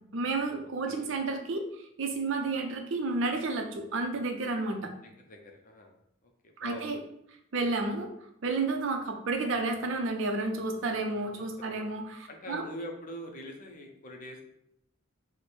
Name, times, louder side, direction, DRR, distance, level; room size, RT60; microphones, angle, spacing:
voice 1, 0.1-1.6 2.0-4.9 6.6-7.0 7.5-8.1 8.4-12.6, right 3 dB, 70° right, 4 dB, 0.5 m, -31 dB
voice 2, 5.0-5.9 6.2-6.3 6.6-7.0 11.0-11.9 12.3-14.4, equal, 40° left, 2 dB, 0.6 m, -44 dB
3.2 x 2.1 x 4.2 m, 0.76 s
head